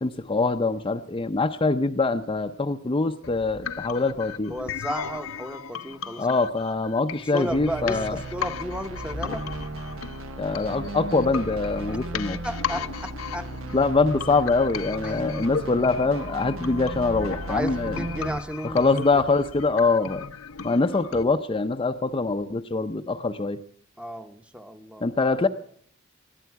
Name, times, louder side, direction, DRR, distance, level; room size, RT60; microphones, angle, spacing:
voice 1, 0.0-4.5 6.2-8.2 10.4-12.4 13.7-18.0 18.6-20.2 20.6-23.6 25.0-25.5, left 3 dB, 25° left, 6 dB, 0.5 m, -24 dB
sound 1, 3.2-21.2, left 6 dB, 90° left, 0.8 m, -36 dB
voice 2, 4.5-6.3 7.3-9.4 12.4-13.8 15.0-15.2 17.5-19.2 24.0-25.0, equal, 5° right, 8 dB, 0.8 m, -34 dB
sound 2, 7.5-18.4, right 2 dB, 85° right, 1.1 m, -36 dB
20.5 x 14.0 x 4.6 m, 0.64 s
head